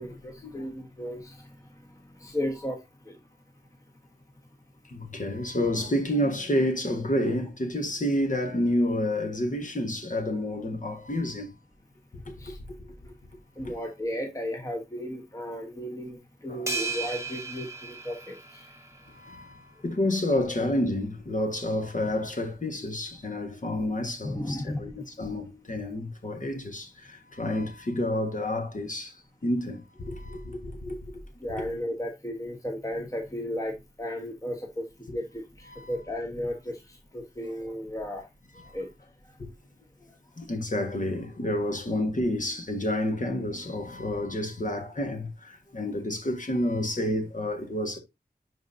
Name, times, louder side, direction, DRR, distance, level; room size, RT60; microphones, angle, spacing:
voice 1, 0.0-1.5 2.2-2.8 3.1-3.2 12.4-12.6 13.6-18.7 24.2-24.9 31.4-34.9 35.1-38.2 38.7-38.9, left 1 dB, 20° left, 1.2 m, -34 dB
voice 2, 4.9-11.5 13.6-13.8 16.5-16.7 19.2-19.5 19.8-29.1 29.4-31.0 35.7-35.9 40.4-48.0, left 1 dB, 50° left, 1.4 m, -29 dB
sound 1, 16.7-19.2, right 4 dB, 15° right, 1.3 m, -35 dB
10.5 x 4.0 x 2.6 m
wide cardioid pair, 50°, 17 cm